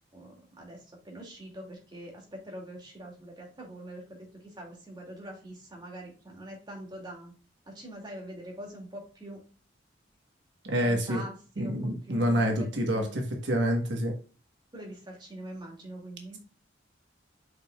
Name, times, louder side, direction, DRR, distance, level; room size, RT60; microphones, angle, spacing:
voice 1, 0.1-7.3 7.7-9.4 10.8-13.1 14.7-16.4, right 1 dB, 25° right, -1 dB, 2.3 m, -44 dB
voice 2, 10.6-11.2 11.6-14.1, equal, 80° right, 3 dB, 1.3 m, -27 dB
7.7 x 5.4 x 2.3 m, 0.37 s
head